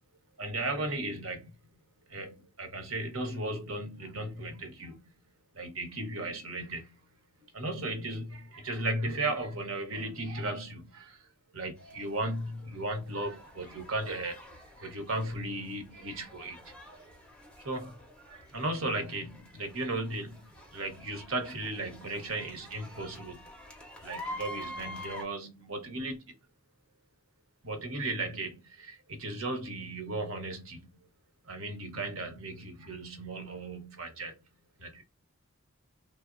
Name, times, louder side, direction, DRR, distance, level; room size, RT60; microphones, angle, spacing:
voice 1, 0.4-1.5 2.1-5.0 5.5-6.9 7.5-11.2 11.5-17.0 17.6-18.0 18.3-23.4 24.0-26.3 27.6-30.8 31.5-34.4 34.8-35.0, right 2 dB, 70° right, 0.9 m, -36 dB
sound 1, 11.8-25.2, equal, 5° left, 0.6 m, -47 dB
3.1 x 2.0 x 2.4 m
head